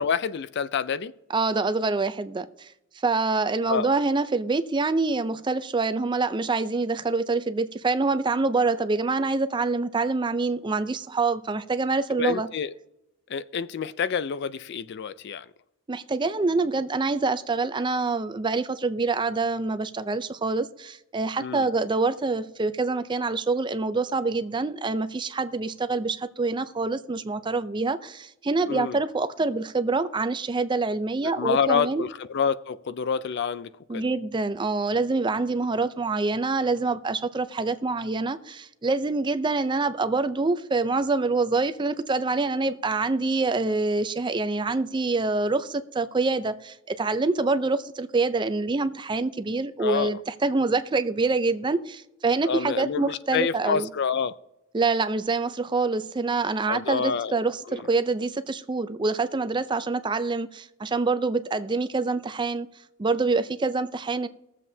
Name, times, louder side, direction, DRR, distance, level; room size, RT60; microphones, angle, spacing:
voice 1, 0.0-1.1 3.7-3.9 12.1-12.7 13.3-15.5 21.4-21.7 28.7-29.0 31.2-34.1 49.8-50.2 52.4-54.3 56.7-57.4 57.7-57.9, left 6 dB, 55° left, 0.4 m, -28 dB
voice 2, 1.3-2.7 3.0-12.5 15.9-32.0 33.9-53.9 54.7-62.7 63.0-64.3, right 3 dB, 25° right, 0.4 m, -26 dB
21.5 x 7.4 x 2.7 m
head